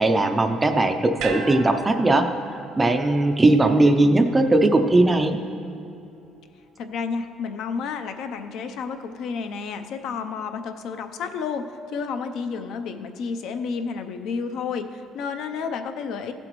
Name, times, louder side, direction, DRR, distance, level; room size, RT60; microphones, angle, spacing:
voice 1, 0.0-2.3 2.7-5.4, right 2 dB, 15° right, 7 dB, 0.4 m, -19 dB
sound 1, 1.2-5.5 5.8-5.9, right 5 dB, 80° right, 1.0 m, -38 dB
voice 2, 3.6-4.4 6.8-11.6 11.9-16.3, left 5 dB, 60° left, 8 dB, 0.6 m, -31 dB
15.0 x 7.8 x 3.0 m, 2.6 s
cardioid pair, 175°, 0 cm